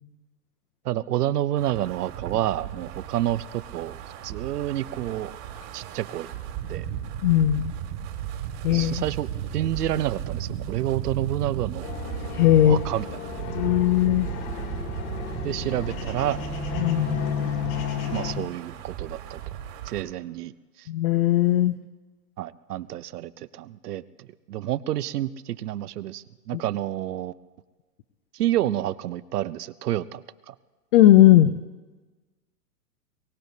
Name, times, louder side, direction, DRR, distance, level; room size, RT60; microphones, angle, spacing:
voice 1, 0.8-3.9 4.2-5.4 5.7-6.3 6.7-6.9 8.7-9.3 9.5-11.9 12.6-13.1 15.4-16.4 18.1-19.4 19.9-20.5 20.8-20.9 22.4-27.3 28.3-30.5, right 13 dB, 75° right, 16 dB, 0.8 m, -29 dB
Wind, 1.6-20.0, right 10 dB, 45° right, 2.1 m, -35 dB
voice 2, 7.2-7.7 8.6-9.0 12.3-12.8 13.5-14.3 16.8-17.2 20.9-21.8 26.5-26.6 30.9-31.6, left 13 dB, 35° left, 10 dB, 0.4 m, -18 dB
sound 1, 11.8-18.3, left 7 dB, 60° left, 2.7 m, -32 dB
23.5 x 16.5 x 2.7 m, 1.3 s
hypercardioid pair, 135°, 47 cm